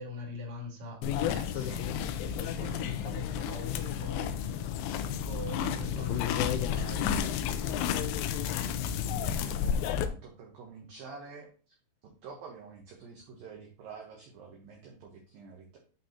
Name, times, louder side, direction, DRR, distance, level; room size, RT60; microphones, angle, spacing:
voice 1, 0.0-4.7 5.0-7.3, left 1 dB, 40° right, -2 dB, 2.1 m, -43 dB
sound 1, 1.0-10.1, left 8 dB, 85° left, 3.2 m, -31 dB
voice 2, 9.2-11.5 12.0-15.8, right 5 dB, 70° right, 0 dB, 2.3 m, -48 dB
11.5 x 4.6 x 2.9 m, 0.39 s
omnidirectional pair, 5.6 m